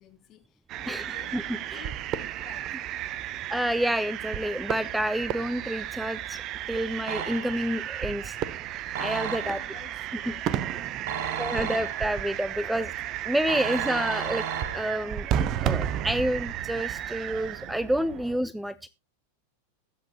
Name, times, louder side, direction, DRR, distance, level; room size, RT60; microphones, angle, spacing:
voice 1, 0.0-2.7 3.3-3.5 9.4-10.5 11.1-11.8, left 9 dB, 35° left, 5 dB, 2.6 m, -51 dB
sound 1, 0.7-18.4, right 11 dB, 35° right, 0.7 m, -33 dB
voice 2, 0.9-1.9 3.5-6.4 6.7-8.4 9.0-9.6 11.4-12.9 13.2-14.5 14.7-15.3 15.6-18.9, right 1 dB, 5° right, 17 dB, 0.5 m, -29 dB
sound 2, 7.1-7.8 8.9-9.8 11.1-12.3 13.5-15.1, right 8 dB, 55° right, 1.6 m, -34 dB
21.0 x 7.5 x 2.8 m, 0.28 s
figure-of-eight pair, 90°, 0 cm